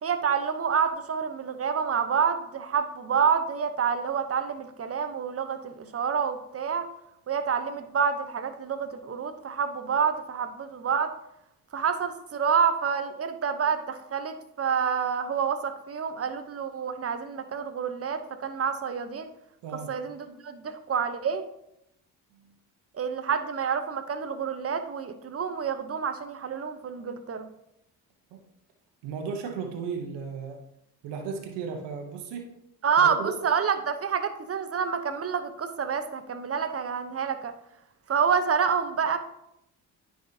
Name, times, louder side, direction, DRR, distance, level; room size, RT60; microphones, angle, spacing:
voice 1, 0.0-6.9 7.3-11.1 11.7-19.3 19.9-21.4 22.9-27.4 32.8-37.5 38.1-39.2, right 6 dB, 35° right, 9 dB, 0.9 m, -28 dB
voice 2, 29.0-30.6 31.0-32.5 33.0-33.3, right 5 dB, 80° right, 3 dB, 1.0 m, -35 dB
9.4 x 4.9 x 2.8 m, 0.80 s
supercardioid pair, 55°, 41 cm